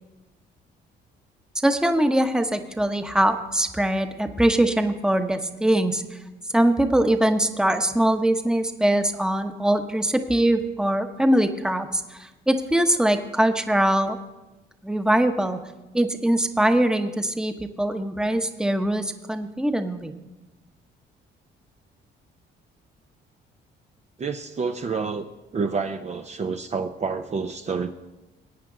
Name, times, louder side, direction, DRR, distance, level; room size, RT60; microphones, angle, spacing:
voice 1, 1.6-6.2 6.5-14.2 14.8-15.6 15.9-20.1, right 1 dB, 5° right, 7 dB, 1.0 m, -22 dB
voice 2, 24.2-27.9, right 5 dB, 35° right, 6 dB, 0.7 m, -29 dB
21.0 x 9.0 x 3.8 m, 1.1 s
cardioid pair, 90°, 20 cm